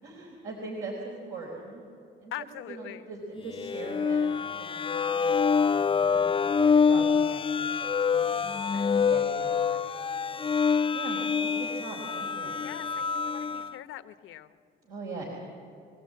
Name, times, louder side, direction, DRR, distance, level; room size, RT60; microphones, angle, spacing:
voice 1, 0.0-1.8 2.2-2.3 2.7-4.3 4.5-6.2 6.6-7.4 7.8-10.5 10.9-12.6 14.9-15.2, right 3 dB, 85° right, -2 dB, 4.4 m, -41 dB
voice 2, 2.3-3.0 8.7-9.0 12.6-14.6, left 12 dB, 85° left, 11 dB, 1.0 m, -42 dB
sound 1, 3.5-13.8, left 6 dB, 25° left, 0.5 m, -26 dB
25.0 x 17.0 x 8.7 m, 2.5 s
cardioid pair, 90°, 20 cm